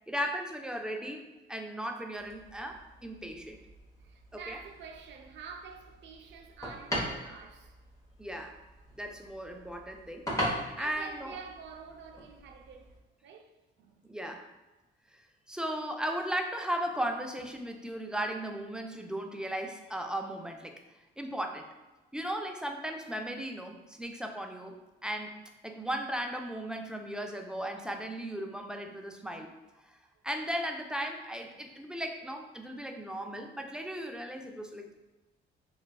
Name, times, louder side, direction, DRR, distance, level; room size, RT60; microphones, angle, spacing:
voice 1, 0.1-1.2 1.5-3.6 4.3-4.6 8.2-8.6 9.0-11.4 14.0-14.5 15.1-20.8 21.2-21.7 22.1-24.8 25.0-25.4 25.6-29.5 29.8-30.0 30.2-35.0, right 1 dB, 5° right, 0.3 m, -36 dB
sound 1, 2.1-13.0, equal, 15° left, 0.8 m, -41 dB
voice 2, 4.0-7.8 10.6-13.5 13.8-14.1 28.8-29.0, right 6 dB, 65° right, 0.5 m, -48 dB
3.9 x 2.2 x 2.2 m
cardioid pair, 90°, 20 cm